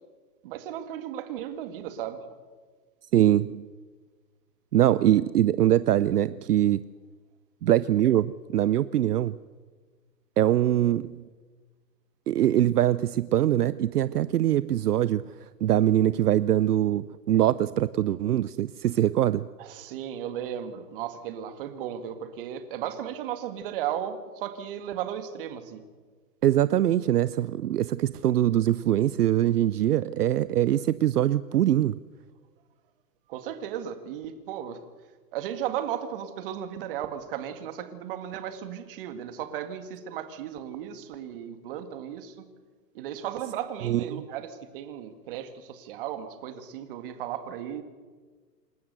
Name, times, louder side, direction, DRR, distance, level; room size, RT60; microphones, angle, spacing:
voice 1, 0.4-2.2 19.6-25.8 33.3-34.8 35.3-42.5 42.9-47.8, right 10 dB, 35° right, 1.9 m, -35 dB
voice 2, 3.1-3.6 4.7-6.8 7.6-9.4 10.4-11.2 12.3-19.5 26.4-32.0 43.8-44.2, right 12 dB, 65° right, 0.7 m, -23 dB
27.5 x 12.5 x 8.1 m
hypercardioid pair, 155°, 50 cm